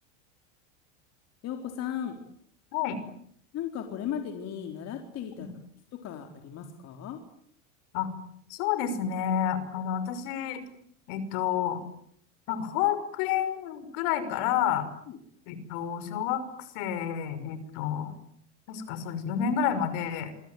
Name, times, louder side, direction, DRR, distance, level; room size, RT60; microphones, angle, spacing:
voice 1, 1.4-2.2 3.5-5.5 5.9-7.2 15.1-15.2, left 9 dB, 40° left, 4 dB, 4.2 m, -36 dB
voice 2, 8.5-10.6 11.1-11.8 12.5-14.9 15.5-16.4 16.7-18.1 18.7-20.3, left 9 dB, 60° left, 12 dB, 6.0 m, -29 dB
27.5 x 23.5 x 9.3 m, 0.68 s
supercardioid pair, 130°, 37 cm